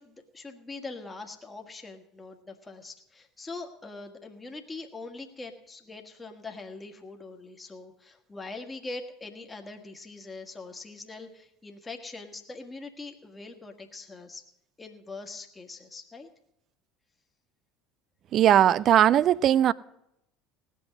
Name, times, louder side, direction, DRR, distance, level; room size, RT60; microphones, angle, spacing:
voice 1, 0.0-14.4 14.8-16.3, left 3 dB, 20° left, 1.6 m, -42 dB
voice 2, 18.3-19.7, right 11 dB, 45° right, 0.4 m, -19 dB
18.0 x 6.2 x 7.5 m
figure-of-eight pair, 65°, 0 cm